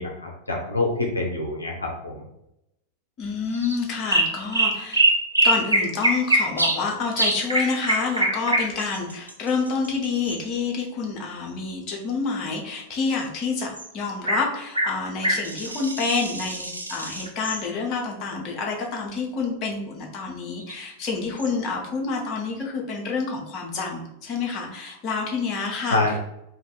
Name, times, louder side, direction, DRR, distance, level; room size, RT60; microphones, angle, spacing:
voice 1, 0.0-2.2 25.9-26.2, left 2 dB, 80° left, 0 dB, 0.5 m, -26 dB
voice 2, 3.2-5.0 5.4-26.0, left 4 dB, 35° left, 0 dB, 0.8 m, -28 dB
sound 1, 3.5-3.8 4.1-6.8 7.2-10.4 13.7-13.9 14.3-14.5 14.7-17.6 20.6-20.7 21.4-21.5, right 1 dB, 85° right, 0.4 m, -23 dB
2.5 x 2.4 x 3.8 m, 0.85 s
figure-of-eight pair, 90°, 0 cm